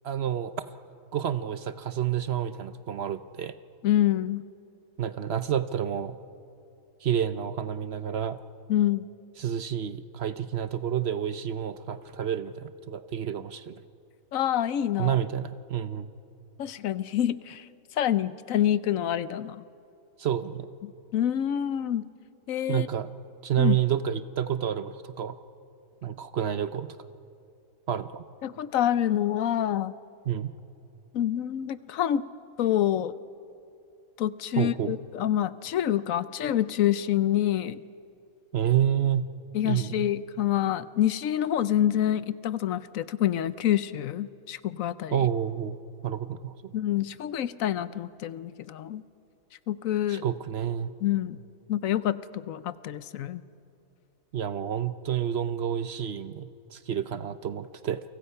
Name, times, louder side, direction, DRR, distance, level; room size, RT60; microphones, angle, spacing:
voice 1, 0.0-0.7 1.1-3.5 5.0-6.1 7.0-8.4 9.4-13.8 15.0-16.1 20.2-20.7 22.7-23.1 23.4-25.4 26.0-27.0 27.9-28.2 30.3-30.5 34.6-34.9 38.5-39.3 39.6-40.1 45.1-45.8 46.0-46.5 50.1-50.9 54.3-58.0, right 9 dB, 55° right, 12 dB, 0.9 m, -29 dB
voice 2, 3.8-4.4 8.7-9.1 14.3-15.2 16.6-17.7 18.0-19.6 21.1-22.1 22.5-22.9 23.6-23.8 28.4-30.0 31.1-32.3 32.6-33.1 34.2-37.8 39.5-45.3 46.7-49.0 49.7-50.2 51.0-51.4 51.7-53.4, left 11 dB, 75° left, 16 dB, 1.1 m, -27 dB
29.5 x 24.5 x 5.6 m, 2.7 s
omnidirectional pair, 1.4 m